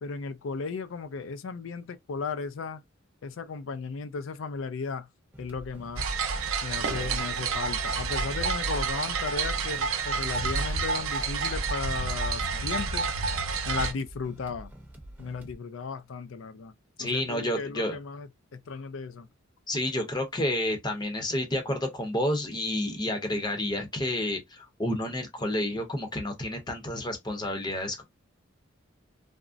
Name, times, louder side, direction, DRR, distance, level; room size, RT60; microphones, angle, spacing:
voice 1, 0.0-2.8 3.2-5.1 5.4-6.1 6.6-13.1 13.7-14.7 15.2-16.7 17.0-19.3, left 5 dB, 70° left, 0.4 m, -35 dB
sound 1, 5.3-15.5, right 1 dB, 10° right, 0.8 m, -47 dB
sound 2, 6.0-13.9, right 4 dB, 90° right, 0.6 m, -29 dB
voice 2, 17.0-18.0 19.7-28.0, left 1 dB, 20° left, 0.7 m, -30 dB
3.6 x 2.0 x 2.4 m
head